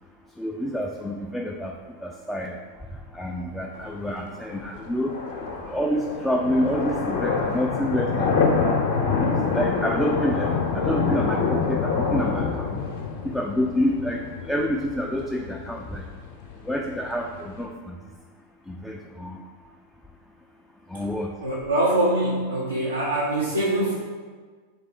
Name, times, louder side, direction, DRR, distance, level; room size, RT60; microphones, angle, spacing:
voice 1, 0.4-2.6 2.9-5.2 5.5-8.4 8.9-12.8 13.2-16.1 16.6-18.0 18.7-19.4 20.9-21.3, equal, 5° left, 0 dB, 0.3 m, -28 dB
sound 1, 3.7-17.7, left 5 dB, 50° left, 0.6 m, -27 dB
voice 2, 21.4-24.0, right 1 dB, 80° right, -5 dB, 0.5 m, -23 dB
3.3 x 3.3 x 4.3 m, 1.5 s
figure-of-eight pair, 90°, 0 cm